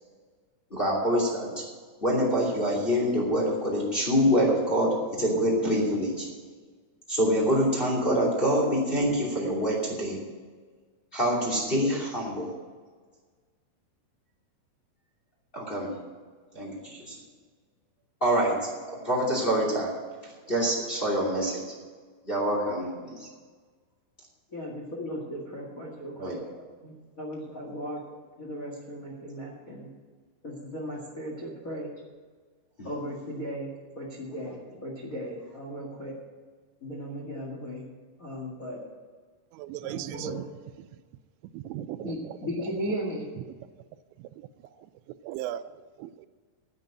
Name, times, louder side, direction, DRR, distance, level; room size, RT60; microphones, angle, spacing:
voice 1, 0.7-1.6 2.0-6.3 7.1-10.2 11.1-12.5 15.5-16.0 16.5-17.2 18.2-19.9 20.2-21.6 22.2-23.3 26.2-26.4 32.8-32.9 34.4-34.5, equal, 15° left, -2 dB, 2.0 m, -26 dB
voice 2, 24.5-26.5 26.8-28.0 28.4-29.9 30.4-31.9 32.8-36.1 36.8-37.9 38.2-38.8 39.8-40.4 42.0-43.3, equal, 50° left, -2 dB, 1.0 m, -36 dB
voice 3, 39.5-40.4 40.8-40.9 41.5-42.4 42.9-43.0 43.5-43.6 44.2-44.5 45.2-46.3, right 13 dB, 85° right, 13 dB, 2.8 m, -38 dB
10.5 x 8.3 x 8.8 m, 1.5 s
omnidirectional pair, 5.1 m